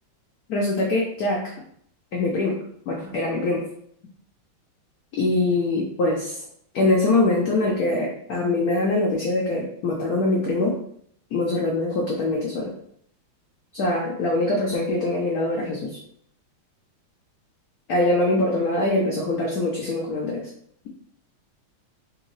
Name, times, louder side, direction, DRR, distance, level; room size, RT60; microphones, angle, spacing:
voice 1, 0.5-1.5 2.1-2.6 2.9-3.6 5.2-6.4 6.7-10.8 11.3-12.7 13.7-16.0 17.9-20.5, left 2 dB, 90° left, -1 dB, 0.8 m, -23 dB
3.6 x 2.9 x 3.1 m, 0.67 s
omnidirectional pair, 2.3 m